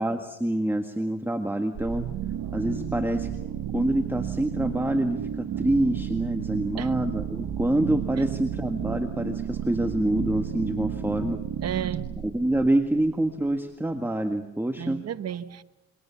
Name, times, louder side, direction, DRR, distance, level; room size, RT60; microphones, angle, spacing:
voice 1, 0.0-2.1 2.5-3.3 3.7-11.4 12.3-15.0, right 1 dB, 5° right, 1.7 m, -26 dB
sound 1, 1.7-13.5, right 9 dB, 75° right, 1.6 m, -32 dB
voice 2, 11.6-12.1 14.8-15.6, right 9 dB, 55° right, 1.2 m, -32 dB
28.5 x 23.0 x 7.1 m
cardioid pair, 90°, 30 cm